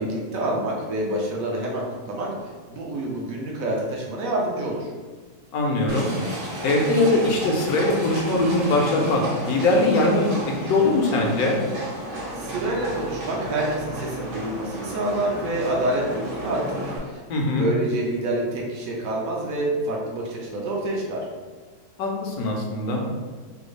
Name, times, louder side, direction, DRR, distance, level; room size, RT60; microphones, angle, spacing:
voice 1, 0.0-4.9 12.3-21.3, right 1 dB, 70° right, -2 dB, 0.9 m, -27 dB
voice 2, 5.5-6.1 6.6-11.6 17.3-17.7 22.0-23.0, left 2 dB, 75° left, 0 dB, 1.0 m, -21 dB
Livestock farm animals working animals, 5.9-17.0, right 1 dB, 90° right, 1.4 m, -33 dB
3.4 x 2.3 x 3.1 m, 1.4 s
omnidirectional pair, 1.7 m